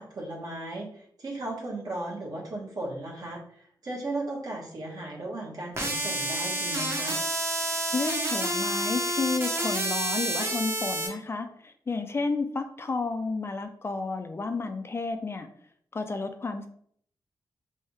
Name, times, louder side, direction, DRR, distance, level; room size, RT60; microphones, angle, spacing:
voice 1, 0.0-7.2, right 2 dB, 55° right, -3 dB, 1.1 m, -36 dB
sound 1, 5.8-11.1, right 1 dB, 35° right, 0.9 m, -29 dB
voice 2, 7.6-15.5 15.9-16.7, left 3 dB, 30° left, 7 dB, 0.4 m, -31 dB
3.4 x 2.7 x 4.5 m, 0.63 s
wide cardioid pair, 140°, 8 cm